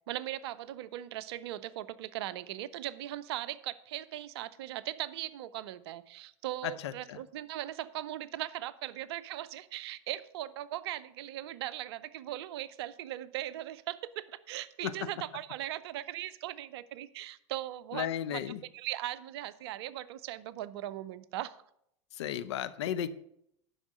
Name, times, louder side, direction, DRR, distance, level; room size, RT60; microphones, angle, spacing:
voice 1, 0.1-18.4 18.7-21.6, right 14 dB, 55° right, 15 dB, 0.6 m, -39 dB
voice 2, 6.6-7.2 14.8-15.1 17.9-18.6 22.2-23.1, left 10 dB, 60° left, 12 dB, 0.6 m, -34 dB
10.5 x 5.6 x 6.0 m, 0.72 s
figure-of-eight pair, 80°, 16 cm